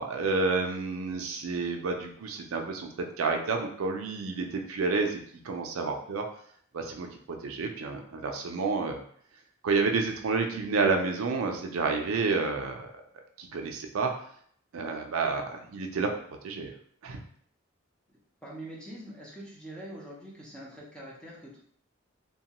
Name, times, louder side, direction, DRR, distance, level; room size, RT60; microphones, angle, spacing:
voice 1, 0.0-2.9 3.2-5.2 5.4-6.2 6.7-9.0 9.6-12.9 13.4-14.1 14.7-16.1 16.4-16.7 17.0-17.2, right 4 dB, 80° right, 3 dB, 0.4 m, -29 dB
voice 2, 18.4-21.6, right 1 dB, 5° left, -5 dB, 0.6 m, -44 dB
2.8 x 2.2 x 2.8 m, 0.62 s
head